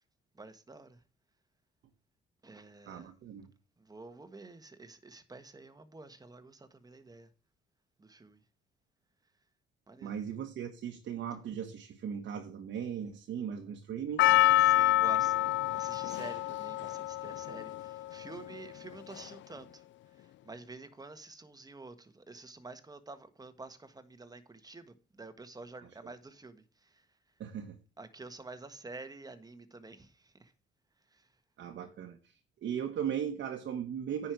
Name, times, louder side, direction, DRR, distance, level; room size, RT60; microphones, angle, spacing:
voice 1, 0.4-1.0 2.4-3.1 3.8-7.3 8.0-8.4 9.9-10.2 14.6-19.8 20.2-27.0 28.0-30.5 31.1-31.3, right 3 dB, 20° right, 1.5 m, -49 dB
voice 2, 2.9-3.5 10.0-14.3 27.4-27.8 31.6-32.3 32.6-34.3, right 8 dB, 70° right, 1.5 m, -37 dB
Percussion, 14.2-18.5 19.2-19.3, left 15 dB, 70° left, 0.4 m, -27 dB
9.9 x 5.6 x 4.6 m
cardioid pair, 90°, 20 cm